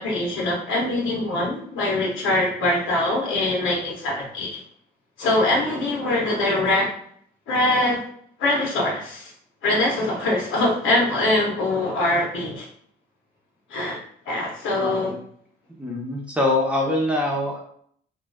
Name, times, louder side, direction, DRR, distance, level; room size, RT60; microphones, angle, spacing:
voice 1, 0.0-4.6 5.2-6.9 7.5-8.0 8.4-9.3 9.6-12.7 13.7-15.1, left 2 dB, 85° left, -2 dB, 0.7 m, -23 dB
voice 2, 15.8-17.6, left 2 dB, 5° right, -2 dB, 0.6 m, -23 dB
2.5 x 2.2 x 2.2 m, 0.63 s
cardioid pair, 90°, 20 cm